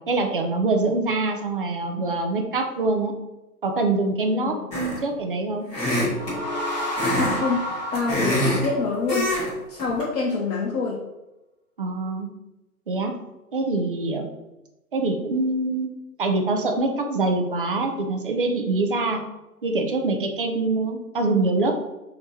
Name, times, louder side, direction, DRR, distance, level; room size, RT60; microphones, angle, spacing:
voice 1, 0.1-3.1 3.6-5.7 11.8-12.3 12.9-13.1 13.5-14.3 14.9-15.9 16.2-19.2 19.6-21.7, right 3 dB, 40° right, 4 dB, 0.4 m, -24 dB
voice 2, 4.3-4.7 7.2-9.3 9.7-11.0, left 4 dB, 65° left, -2 dB, 0.8 m, -26 dB
sound 1, 4.7-5.1 5.7-6.4 6.9-7.4 7.7-8.7 9.1-9.5 9.8-10.0, left 1 dB, 15° left, 1.3 m, -24 dB
sound 2, 5.9-9.4, left 1 dB, 30° left, 0.5 m, -31 dB
4.2 x 2.9 x 3.1 m, 0.98 s
figure-of-eight pair, 130°, 46 cm